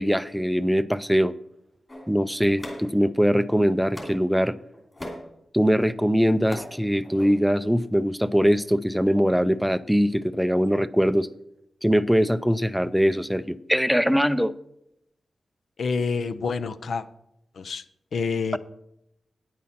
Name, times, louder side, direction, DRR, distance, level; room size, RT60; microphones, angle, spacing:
voice 1, 0.0-1.3 2.1-4.6 5.5-11.3 11.8-14.5, equal, ahead, 15 dB, 0.4 m, -22 dB
sound 1, 1.9-3.4 3.9-4.3 4.7-5.3 6.1-6.7 7.0-7.3, left 1 dB, 25° left, 2.8 m, -39 dB
voice 2, 15.8-17.1 17.5-17.8 18.1-18.6, left 5 dB, 75° left, 13 dB, 0.6 m, -27 dB
9.6 x 8.4 x 5.7 m, 0.80 s
wide cardioid pair, 140°, 0 cm